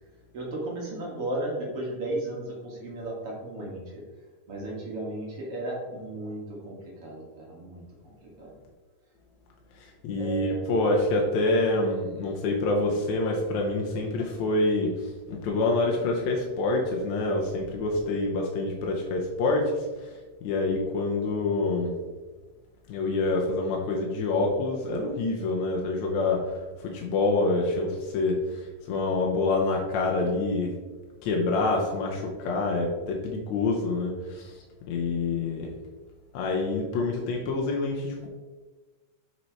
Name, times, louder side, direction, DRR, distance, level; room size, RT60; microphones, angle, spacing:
voice 1, 0.3-4.0 4.5-8.5 10.2-10.7, right 1 dB, 55° right, -3 dB, 1.9 m, -35 dB
voice 2, 10.0-14.9 15.3-19.7 20.4-21.9 22.9-26.5 26.8-28.4 28.9-30.7 31.2-34.5 34.9-35.7 36.3-38.3, left 2 dB, 75° left, 0 dB, 1.9 m, -26 dB
7.1 x 4.3 x 4.4 m, 1.3 s
omnidirectional pair, 3.9 m